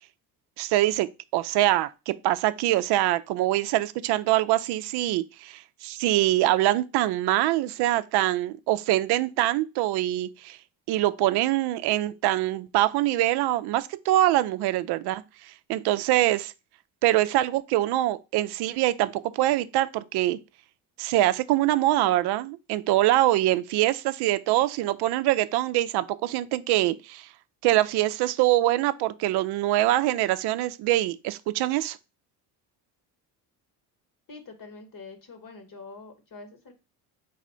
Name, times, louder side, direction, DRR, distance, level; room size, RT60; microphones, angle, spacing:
voice 1, 0.6-1.1 1.3-10.6 10.9-16.5 17.0-20.4 21.0-27.3 27.6-32.0, right 15 dB, 60° right, 0.5 m, -24 dB
voice 2, 34.3-36.7, left 3 dB, 45° left, 1.3 m, -45 dB
4.1 x 2.5 x 4.3 m
hypercardioid pair, 65°, 47 cm